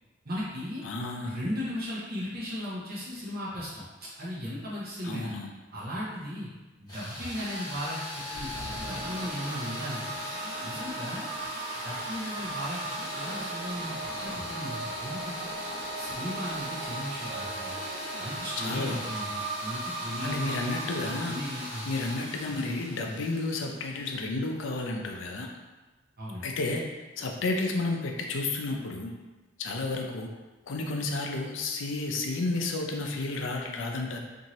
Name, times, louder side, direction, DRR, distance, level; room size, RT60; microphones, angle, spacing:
voice 1, 0.2-0.8 1.2-5.3 5.7-6.5 6.8-10.1 10.6-11.3 11.8-13.9 14.2-15.5 16.0-17.8 18.2-20.7 21.2-21.9 26.2-26.5, equal, 55° right, -7 dB, 0.8 m, -36 dB
voice 2, 0.8-1.4 5.0-5.5 18.6-19.0 20.2-21.3 21.9-25.5 26.4-26.8 27.2-29.1 29.6-30.3 30.7-34.2, left 2 dB, 75° left, 1 dB, 0.5 m, -31 dB
sound 1, 6.9-24.6, left 1 dB, 20° left, 0.9 m, -39 dB
sound 2, 8.3-22.7, right 3 dB, 85° right, 0.6 m, -38 dB
2.7 x 2.6 x 3.0 m, 1.2 s
head